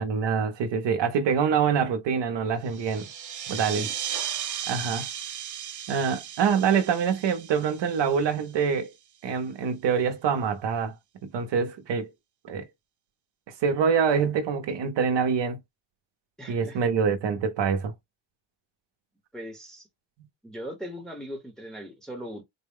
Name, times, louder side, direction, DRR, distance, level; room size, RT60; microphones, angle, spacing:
voice 1, 0.0-3.1 3.5-3.9 4.7-5.1 5.9-8.9 9.2-11.0 11.2-12.1 12.4-12.7 13.5-15.6 16.5-17.9, right 6 dB, 60° right, 0.8 m, -25 dB
sound 1, 2.7-8.8, right 9 dB, 40° right, 0.5 m, -36 dB
voice 2, 16.4-16.8 19.3-19.9 20.4-22.4, equal, ahead, 0.9 m, -39 dB
4.1 x 2.2 x 3.5 m
wide cardioid pair, 160°, 48 cm